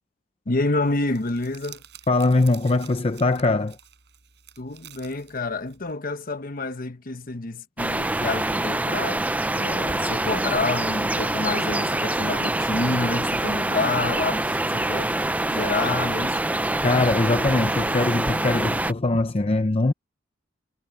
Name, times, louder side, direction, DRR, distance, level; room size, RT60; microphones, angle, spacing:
voice 1, 0.5-1.8 4.6-9.2 9.5-15.2 15.5-16.4, left 3 dB, 50° left, 1.2 m, -28 dB
Crumpling crinkling, 0.8-5.9, right 10 dB, 65° right, 6.4 m, -49 dB
voice 2, 2.1-3.8 16.8-19.9, left 2 dB, 30° left, 0.7 m, -22 dB
sound 1, 7.8-18.9, right 1 dB, 10° right, 0.5 m, -25 dB
head